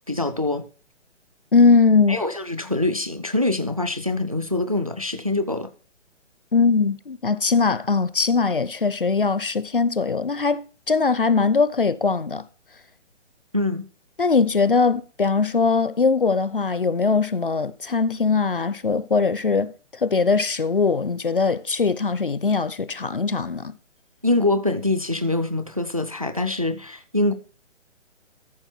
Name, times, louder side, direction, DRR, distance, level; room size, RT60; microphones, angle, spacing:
voice 1, 0.1-0.6 2.1-5.7 13.5-13.8 24.2-27.3, left 2 dB, 30° right, 0.4 m, -24 dB
voice 2, 1.5-2.2 6.5-12.4 14.2-23.7, left 4 dB, 45° left, 0.5 m, -21 dB
13.5 x 6.0 x 4.3 m
hypercardioid pair, 180°, 37 cm